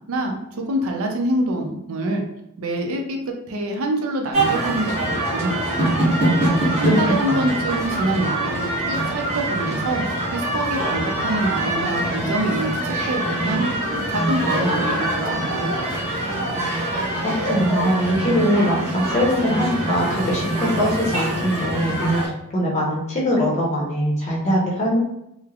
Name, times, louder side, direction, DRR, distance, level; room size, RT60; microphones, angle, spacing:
voice 1, 0.1-2.3 2.6-5.9 6.8-10.0 10.3-13.6 14.1-16.1, right 1 dB, 70° right, 2 dB, 0.5 m, -26 dB
sound 1, 4.3-22.3, right 1 dB, 30° right, 1.0 m, -24 dB
voice 2, 17.2-25.0, equal, 30° left, -4 dB, 0.7 m, -22 dB
3.1 x 2.0 x 2.3 m, 0.84 s
head